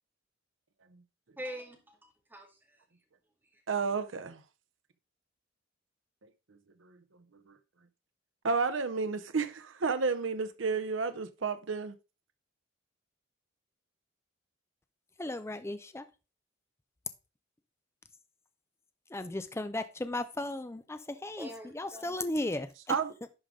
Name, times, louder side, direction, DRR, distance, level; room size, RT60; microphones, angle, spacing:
voice 1, 1.4-2.8 21.4-22.0, equal, 10° right, 2.1 m, -44 dB
voice 2, 3.7-4.4 6.8-7.0 8.4-11.9 22.9-23.1, right 4 dB, 65° right, 0.7 m, -31 dB
voice 3, 15.2-16.0 19.1-23.0, left 1 dB, 15° left, 0.5 m, -36 dB
11.0 x 5.0 x 3.7 m
head